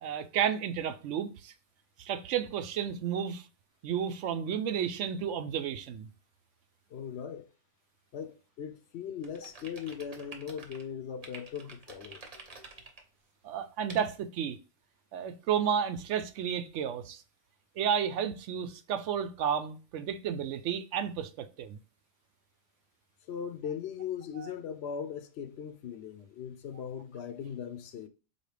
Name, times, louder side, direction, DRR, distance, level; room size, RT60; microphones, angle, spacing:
voice 1, 0.0-1.5 2.0-3.4 3.8-6.1 13.4-14.6 15.1-17.2 17.8-21.8 24.4-24.5, right 8 dB, 90° right, 0.9 m, -32 dB
voice 2, 6.9-7.5 8.1-12.2 23.3-28.1, left 8 dB, 70° left, 0.8 m, -39 dB
sound 1, 9.2-10.8 11.2-13.0 13.9-14.0, right 3 dB, 35° right, 0.8 m, -48 dB
4.2 x 2.8 x 3.2 m
omnidirectional pair, 1.2 m